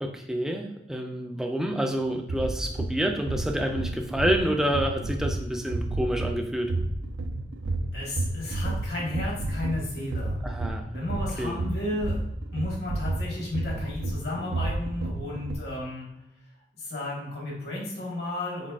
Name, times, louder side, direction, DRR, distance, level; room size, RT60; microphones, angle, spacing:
voice 1, 0.0-6.7 10.4-10.9 11.4-11.6, equal, 5° right, 3 dB, 0.3 m, -28 dB
sound 1, 2.1-15.6, right 2 dB, 85° right, 0.4 m, -31 dB
voice 2, 7.9-10.4 10.9-12.2 12.5-16.1 16.8-18.7, left 1 dB, 65° left, -3 dB, 1.5 m, -33 dB
4.0 x 4.0 x 2.4 m, 0.85 s
head